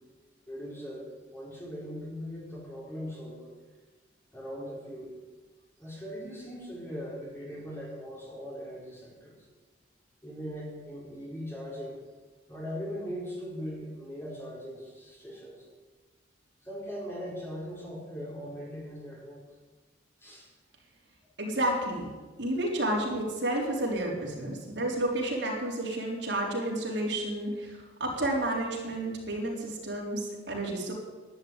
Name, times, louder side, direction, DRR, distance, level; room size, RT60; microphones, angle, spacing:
voice 1, 0.5-3.5 4.3-5.2 5.8-9.4 10.2-12.0 12.5-15.7 16.6-19.4 20.2-20.5, equal, 10° left, -4 dB, 4.5 m, -40 dB
voice 2, 21.4-22.1 22.4-30.9, right 1 dB, 65° right, -2 dB, 3.9 m, -31 dB
12.0 x 11.0 x 8.9 m, 1.3 s
head